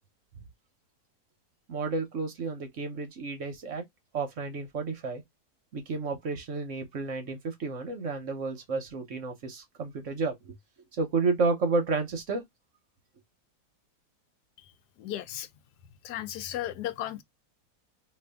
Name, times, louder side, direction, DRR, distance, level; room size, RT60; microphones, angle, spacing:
voice 1, 1.7-3.8 4.1-5.2 5.7-10.5 11.0-12.4, right 4 dB, 55° right, 1.0 m, -31 dB
voice 2, 15.0-15.5 16.0-17.2, left 12 dB, 80° left, 1.1 m, -35 dB
2.7 x 2.6 x 3.3 m
omnidirectional pair, 1.7 m